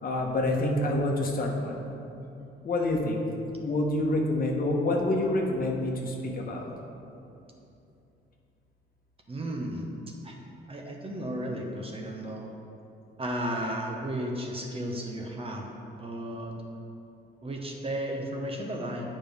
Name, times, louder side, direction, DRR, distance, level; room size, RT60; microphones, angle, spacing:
voice 1, 0.0-1.9 2.6-3.2 3.6-6.7, left 1 dB, 45° left, 0 dB, 1.1 m, -27 dB
voice 2, 9.3-9.8 10.2-10.4 10.7-12.5 13.2-15.7 15.9-16.6 17.4-19.0, right 1 dB, 30° right, 1 dB, 0.9 m, -34 dB
8.7 x 5.5 x 3.5 m, 2.7 s
cardioid pair, 90°, 20 cm